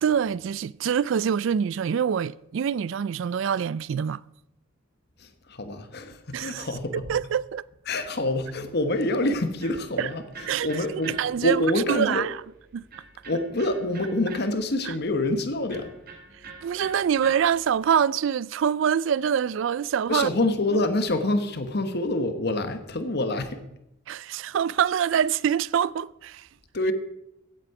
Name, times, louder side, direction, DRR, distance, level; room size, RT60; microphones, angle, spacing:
voice 1, 0.0-4.2 6.3-6.7 6.9-7.6 10.0-10.1 10.5-10.7 11.1-11.6 11.9-12.4 12.7-12.8 14.9-15.0 16.6-20.3 24.1-26.4, right 8 dB, 65° right, 0.3 m, -25 dB
voice 2, 5.2-7.0 7.9-12.2 13.3-15.9 20.1-23.6 26.7-26.9, left 2 dB, 50° left, 1.2 m, -26 dB
Electric guitar, 8.9-18.0, right 4 dB, 45° right, 2.3 m, -47 dB
16.0 x 8.4 x 4.8 m
head